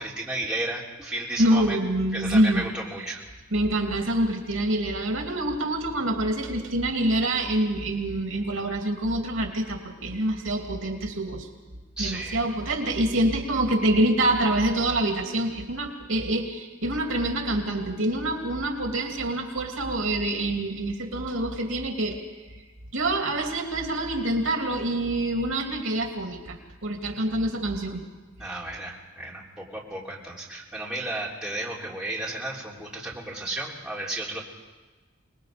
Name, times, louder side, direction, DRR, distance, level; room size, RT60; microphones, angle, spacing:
voice 1, 0.0-1.8 2.1-3.2 12.0-12.4 27.1-27.2 28.4-34.4, right 1 dB, 5° right, -5 dB, 3.3 m, -33 dB
voice 2, 1.4-2.7 3.5-11.5 12.0-22.2 22.9-26.6 26.8-28.0, right 1 dB, 75° right, 2 dB, 2.8 m, -26 dB
26.0 x 20.5 x 5.2 m, 1.3 s
head